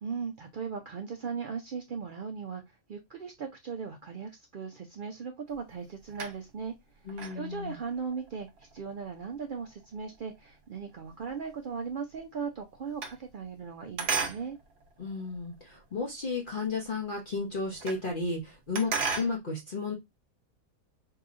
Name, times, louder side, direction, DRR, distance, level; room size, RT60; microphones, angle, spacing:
voice 1, 0.0-6.7 7.3-14.6, right 6 dB, 70° right, 4 dB, 0.5 m, -38 dB
sound 1, 5.5-6.7 7.1-11.6 11.9-13.7 14.0-16.0 16.5-16.6 16.8-16.9 17.1-18.1 18.4-19.4, right 5 dB, 55° right, 0.8 m, -37 dB
voice 2, 7.1-7.8 15.0-20.0, left 3 dB, 45° left, -2 dB, 0.9 m, -33 dB
4.8 x 2.7 x 2.4 m, 0.19 s
omnidirectional pair, 1.4 m